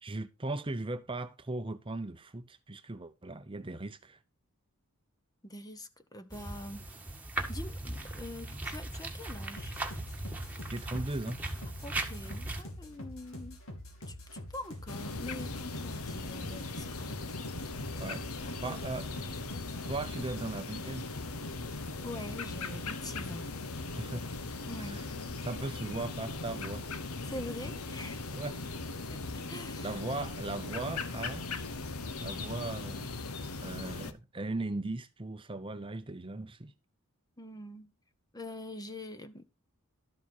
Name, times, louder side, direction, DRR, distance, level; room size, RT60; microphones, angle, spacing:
voice 1, 0.0-4.2 10.7-11.4 18.0-18.2 18.6-19.1 19.9-21.1 23.9-24.3 24.9-25.0 25.4-26.9 28.3-28.6 29.8-31.4 32.2-33.1 33.6-36.7, right 2 dB, 25° right, 0.7 m, -38 dB
voice 2, 5.4-6.9 7.5-9.7 11.8-13.6 14.1-17.2 18.4-18.8 22.0-23.5 24.7-25.1 27.2-28.3 29.1-30.0 37.4-37.9 38.3-39.4, left 1 dB, 15° left, 1.0 m, -44 dB
sound 1, 6.3-12.6, right 2 dB, 5° right, 1.7 m, -38 dB
sound 2, 9.6-20.6, left 1 dB, 65° left, 2.8 m, -46 dB
sound 3, 14.9-34.1, left 3 dB, 85° left, 1.2 m, -39 dB
12.5 x 7.2 x 4.4 m
head